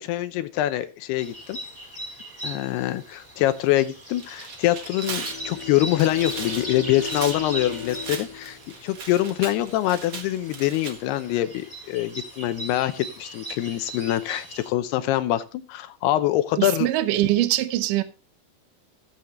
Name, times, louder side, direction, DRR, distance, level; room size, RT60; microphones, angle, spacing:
voice 1, 0.0-1.6 2.4-16.9, left 14 dB, 75° left, 2.6 m, -25 dB
sound 1, 1.2-14.7, right 1 dB, 15° right, 2.5 m, -39 dB
Tearing, 4.1-10.9, right 5 dB, 50° right, 1.8 m, -38 dB
Bowed string instrument, 5.0-9.8, left 7 dB, 60° left, 3.9 m, -39 dB
voice 2, 16.6-18.0, right 14 dB, 85° right, 1.9 m, -22 dB
16.0 x 8.2 x 3.0 m
omnidirectional pair, 5.1 m